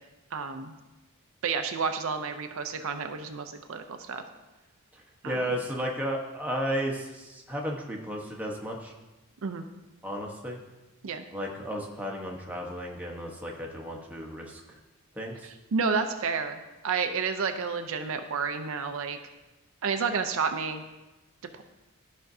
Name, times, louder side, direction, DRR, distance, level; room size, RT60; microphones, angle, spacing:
voice 1, 0.3-0.7 1.4-4.2 5.2-5.4 9.4-9.7 11.0-11.2 15.7-19.2 19.8-20.8 21.5-21.6, right 5 dB, 65° right, 7 dB, 0.5 m, -30 dB
voice 2, 4.9-8.9 10.0-10.6 11.3-14.8 15.2-15.5, equal, 5° right, -1 dB, 1.0 m, -34 dB
13.5 x 5.2 x 2.7 m, 1.1 s
head